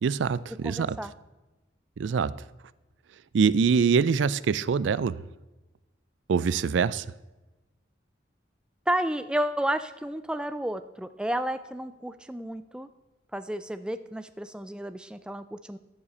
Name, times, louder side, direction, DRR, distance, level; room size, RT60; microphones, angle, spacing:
voice 1, 0.0-1.0 2.0-2.3 3.3-5.2 6.3-7.0, right 6 dB, 80° right, 18 dB, 0.4 m, -24 dB
voice 2, 0.6-1.1 8.9-12.9 13.3-15.8, right 1 dB, 5° right, 11 dB, 0.3 m, -31 dB
13.5 x 7.4 x 4.2 m, 1.1 s
head